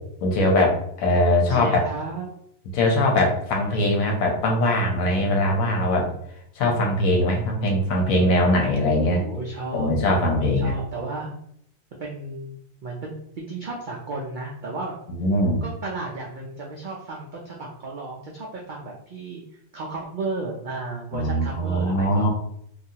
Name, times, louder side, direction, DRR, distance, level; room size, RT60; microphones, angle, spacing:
voice 1, 0.2-1.8 2.7-6.1 6.6-9.3 9.7-10.7 15.2-15.6 21.1-22.3, left 1 dB, 85° left, 1 dB, 1.2 m, -21 dB
voice 2, 1.5-2.3 9.0-10.0 10.6-11.4 12.0-12.6 12.8-15.0 15.6-22.3, right 2 dB, 80° right, -2 dB, 0.4 m, -33 dB
3.0 x 2.3 x 2.7 m, 0.71 s
omnidirectional pair, 1.4 m